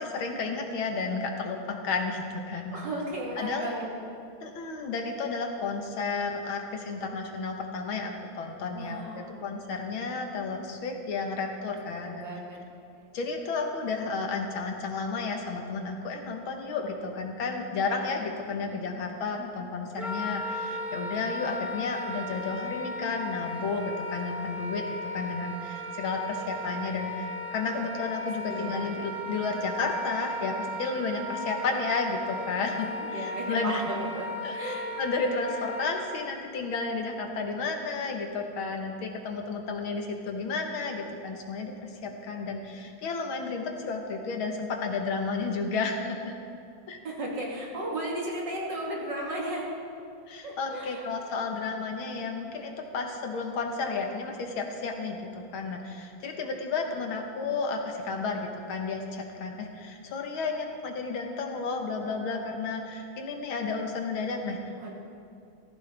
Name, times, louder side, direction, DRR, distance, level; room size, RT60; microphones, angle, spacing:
voice 1, 0.0-2.8 3.4-3.7 4.4-9.0 9.4-12.2 13.1-33.8 34.4-46.3 46.9-47.0 50.3-64.6, left 4 dB, 85° left, 3 dB, 2.1 m, -32 dB
voice 2, 2.7-4.1 8.7-9.8 12.0-12.6 18.4-18.7 28.5-28.9 33.0-34.9 47.0-49.7 50.4-51.1 64.8-65.0, right 1 dB, 60° right, -4 dB, 3.1 m, -35 dB
Wind instrument woodwind instrument, 20.0-36.0, equal, ahead, 1.5 m, -36 dB
18.5 x 14.5 x 3.5 m, 2.4 s
omnidirectional pair, 2.2 m